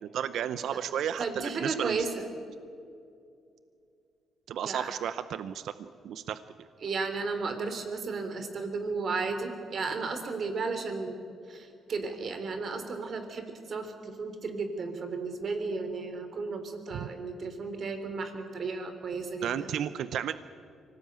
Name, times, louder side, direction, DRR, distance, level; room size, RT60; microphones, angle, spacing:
voice 1, 0.0-2.0 4.5-6.7 19.4-20.3, right 9 dB, 75° right, 13 dB, 0.7 m, -33 dB
voice 2, 1.2-2.3 4.6-4.9 6.8-11.2 11.5-19.7, right 4 dB, 50° right, 7 dB, 3.6 m, -34 dB
25.0 x 18.0 x 9.1 m, 2.5 s
cardioid pair, 90°, 0 cm